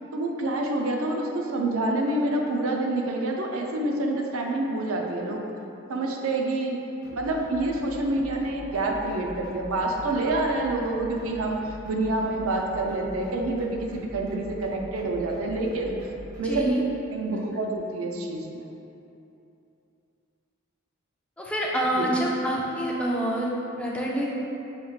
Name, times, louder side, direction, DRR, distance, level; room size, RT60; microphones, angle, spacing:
voice 1, 0.1-5.4 5.9-6.8 7.1-16.1 16.4-16.7 17.1-18.7 22.0-22.1, right 2 dB, 80° right, 1 dB, 0.5 m, -27 dB
sound 1, 7.0-16.7, equal, 20° right, 0.7 m, -44 dB
voice 2, 16.4-16.8 17.3-17.4 21.4-24.3, right 1 dB, 5° left, -4 dB, 0.4 m, -27 dB
5.7 x 3.1 x 2.4 m, 2.8 s
head